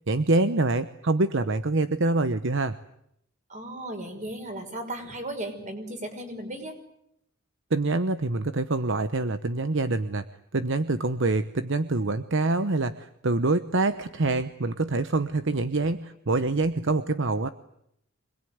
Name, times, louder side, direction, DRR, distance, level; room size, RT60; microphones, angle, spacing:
voice 1, 0.1-2.8 7.7-10.2 10.5-17.5, right 2 dB, 60° right, 11 dB, 1.0 m, -25 dB
voice 2, 3.5-6.7, right 1 dB, 35° right, 6 dB, 5.5 m, -36 dB
26.0 x 21.0 x 9.5 m, 0.76 s
head